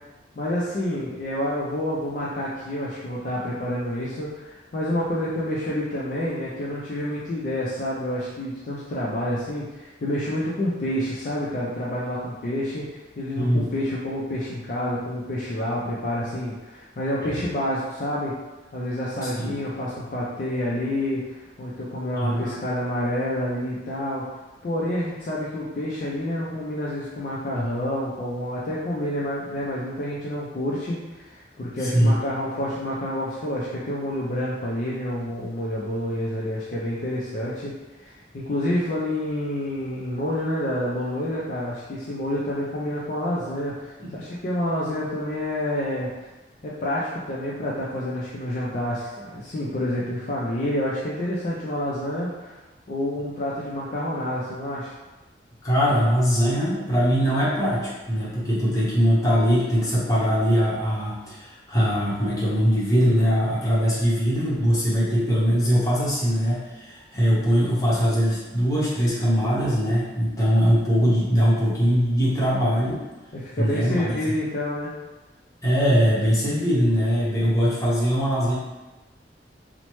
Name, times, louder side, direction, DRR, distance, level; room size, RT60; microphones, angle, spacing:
voice 1, 0.4-18.3 18.7-24.2 24.6-37.7 38.0-46.1 46.6-52.6 52.9-54.9 73.3-74.9, left 1 dB, 45° left, -6 dB, 0.4 m, -28 dB
voice 2, 19.2-19.5 22.1-22.5 31.8-32.2 44.0-44.1 55.6-73.0 73.6-74.1 75.6-78.5, equal, 20° left, -9 dB, 0.9 m, -21 dB
3.0 x 2.1 x 3.0 m, 1.1 s
head